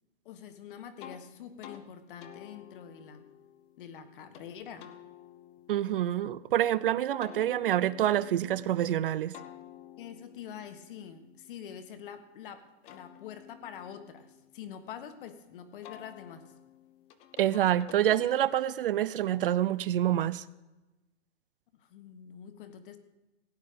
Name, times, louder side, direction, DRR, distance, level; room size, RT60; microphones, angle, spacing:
voice 1, 0.2-3.3 3.8-4.9 10.0-16.5 21.7-23.0, left 8 dB, 50° left, 8 dB, 1.5 m, -45 dB
sound 1, 1.0-1.2 1.6-1.8 2.2-4.5 4.8-6.7 7.2-8.9 9.3-12.2 12.6-15.3 15.8-18.8, left 10 dB, 20° left, 0.6 m, -52 dB
voice 2, 5.7-9.3 17.4-20.4, right 12 dB, 55° right, 18 dB, 0.5 m, -27 dB
16.5 x 9.7 x 5.1 m, 1.1 s
hypercardioid pair, 160°, 34 cm